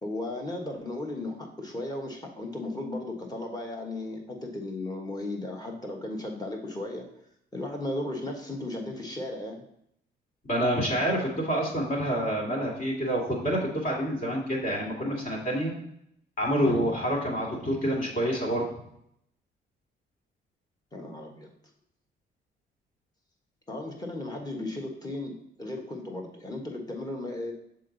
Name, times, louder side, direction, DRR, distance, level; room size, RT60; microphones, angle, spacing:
voice 1, 0.0-7.1 7.5-9.6 20.9-21.5 23.7-25.3 25.6-27.5, left 2 dB, 20° left, 1 dB, 1.3 m, -35 dB
voice 2, 10.5-15.7 16.4-18.7, equal, 45° left, -2 dB, 2.2 m, -27 dB
6.3 x 3.9 x 3.9 m, 0.75 s
cardioid pair, 90°, 20 cm